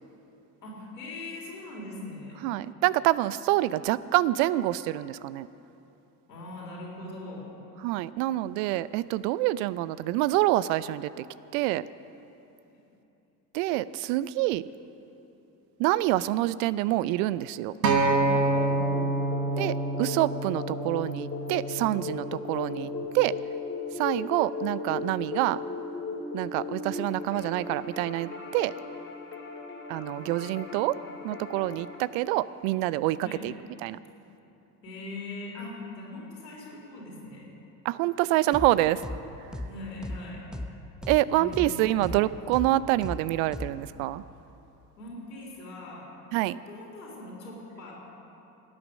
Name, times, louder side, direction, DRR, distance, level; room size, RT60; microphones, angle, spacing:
voice 1, 0.6-2.5 6.3-7.5 18.6-19.6 30.1-30.2 33.2-33.4 34.8-37.5 39.6-40.4 41.2-42.2 45.0-46.2 46.5-47.9, left 2 dB, 85° left, -3 dB, 3.5 m, -41 dB
voice 2, 2.4-5.5 7.8-11.2 11.5-11.8 13.5-14.6 15.8-17.7 19.6-22.9 23.1-23.3 23.9-25.6 26.3-28.7 29.9-31.0 31.2-33.5 33.8-34.0 37.8-39.0 41.1-44.2 46.3-46.6, right 16 dB, 55° right, 18 dB, 0.5 m, -26 dB
Acoustic guitar, 17.8-22.1 22.9-23.0, right 2 dB, 85° right, 1.2 m, -27 dB
sound 1, 18.1-32.0, left 4 dB, 25° left, 2.5 m, -37 dB
sound 2, 38.5-38.7 39.0-39.2 39.5-39.7 40.0-40.2 40.5-40.7 41.0-41.2 41.5-41.7 42.0-42.2 42.5-42.7 43.0-43.2 43.5-43.7, left 1 dB, ahead, 0.8 m, -35 dB
17.0 x 9.7 x 6.3 m, 2.9 s
figure-of-eight pair, 65°, 48 cm